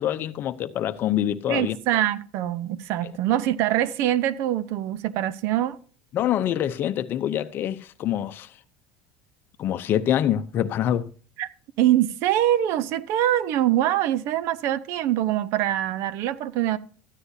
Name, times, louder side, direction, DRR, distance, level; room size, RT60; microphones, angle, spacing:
voice 1, 0.0-1.8 6.1-8.5 9.6-11.1, left 11 dB, 45° left, 0.7 m, -25 dB
voice 2, 1.5-5.8 11.4-11.5 11.8-16.8, right 12 dB, 60° right, 0.7 m, -24 dB
14.0 x 9.7 x 2.8 m
supercardioid pair, 130°, 5 cm